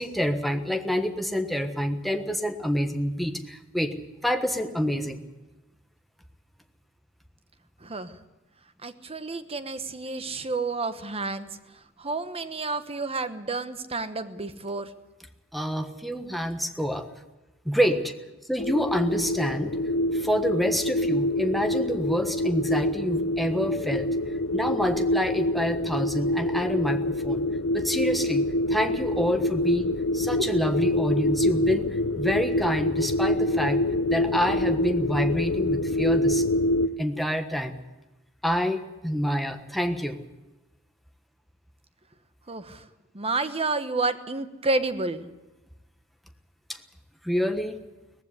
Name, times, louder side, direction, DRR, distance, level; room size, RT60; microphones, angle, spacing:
voice 1, 0.0-3.9 4.2-5.2 15.5-17.1 17.6-18.1 18.5-19.8 20.1-24.1 24.5-27.4 27.7-29.8 30.1-33.8 34.1-36.4 37.0-37.8 38.4-40.2 46.7-46.8 47.2-47.8, equal, ahead, 6 dB, 1.3 m, -27 dB
voice 2, 7.8-8.2 8.8-11.6 12.0-14.9 30.6-30.7 42.5-42.8 43.1-45.3, right 3 dB, 30° right, 10 dB, 1.1 m, -30 dB
sound 1, 18.6-36.9, left 1 dB, 70° left, 0.8 m, -26 dB
18.0 x 15.5 x 9.7 m, 1.0 s
head